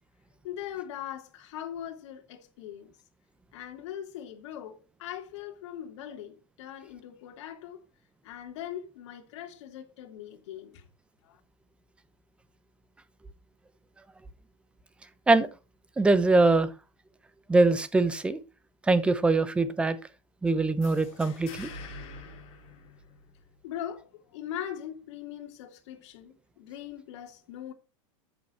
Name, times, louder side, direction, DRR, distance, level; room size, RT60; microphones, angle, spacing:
voice 1, 0.4-2.9 3.5-7.9 8.2-10.8 11.2-11.4 23.6-27.7, left 10 dB, 60° left, 3.1 m, -41 dB
voice 2, 16.0-16.7 17.5-18.4 18.8-20.0 20.4-21.7, right 3 dB, 5° right, 0.9 m, -23 dB
sound 1, 20.8-23.5, left 3 dB, 35° left, 4.7 m, -45 dB
13.5 x 7.2 x 4.5 m
supercardioid pair, 160°, 17 cm